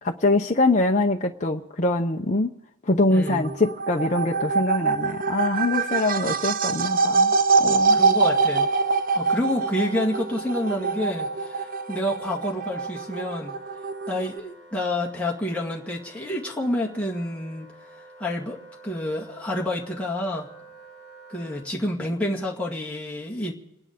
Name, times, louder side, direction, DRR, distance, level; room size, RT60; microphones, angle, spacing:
voice 1, 0.0-2.5 2.8-8.0, left 2 dB, 35° left, 1 dB, 0.8 m, -24 dB
voice 2, 3.1-3.6 7.9-8.7 9.1-13.6 14.1-17.7 18.2-20.5 21.3-23.5, left 1 dB, 5° left, -4 dB, 2.0 m, -28 dB
sound 1, 3.1-14.4, right 4 dB, 40° right, 0.5 m, -24 dB
Wind instrument woodwind instrument, 8.3-21.7, right 1 dB, 55° right, 6.8 m, -47 dB
28.0 x 10.0 x 5.2 m, 0.88 s
head